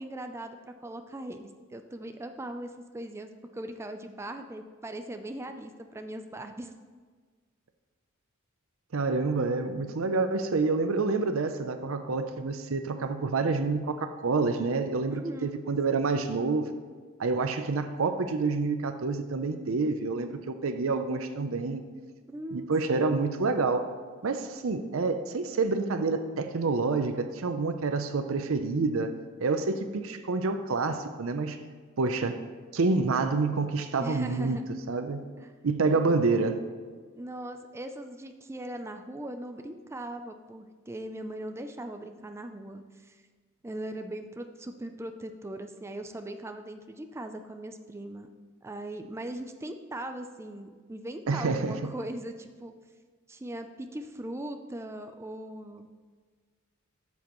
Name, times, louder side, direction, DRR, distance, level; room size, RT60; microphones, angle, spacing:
voice 1, 0.0-6.7 15.1-15.6 22.3-23.2 34.0-34.7 35.4-35.5 37.1-43.2 43.6-48.3 48.6-52.7 53.3-55.9, right 1 dB, 15° right, 6 dB, 0.4 m, -39 dB
voice 2, 8.9-16.8 17.2-21.8 22.5-23.9 24.2-29.1 29.4-31.6 32.0-32.4 32.7-34.6 34.9-35.2 35.6-36.6 51.3-51.9, right 3 dB, 70° right, 8 dB, 0.6 m, -28 dB
13.0 x 7.2 x 3.1 m, 1.5 s
head